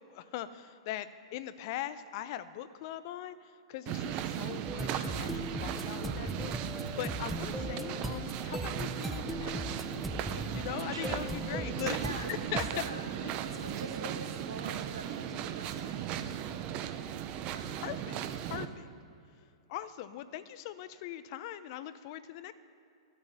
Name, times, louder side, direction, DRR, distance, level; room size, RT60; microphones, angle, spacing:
voice 1, 0.1-9.9 10.5-12.6 17.8-18.2 18.5-18.9 19.7-22.5, left 12 dB, 50° left, 13 dB, 0.8 m, -41 dB
sound 1, 3.9-18.7, right 10 dB, 40° right, 0.9 m, -37 dB
sound 2, 4.7-12.7, equal, ahead, 0.7 m, -39 dB
voice 2, 11.9-16.1 17.5-17.8, right 2 dB, 75° right, -1 dB, 3.2 m, -45 dB
13.0 x 12.5 x 5.7 m, 2.7 s
hypercardioid pair, 105°, 3 cm